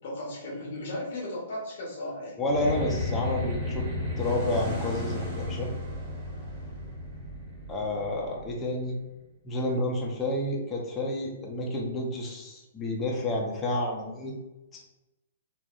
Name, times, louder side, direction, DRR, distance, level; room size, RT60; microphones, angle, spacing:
voice 1, 0.0-2.4, left 1 dB, 55° left, -2 dB, 0.8 m, -36 dB
voice 2, 2.4-3.9 4.2-5.7 7.7-8.9 9.4-14.3, left 1 dB, 20° left, -1 dB, 0.6 m, -30 dB
sound 1, 2.5-9.1, left 1 dB, 10° right, 1.4 m, -34 dB
3.6 x 2.1 x 2.4 m, 0.97 s
hypercardioid pair, 125°, 0 cm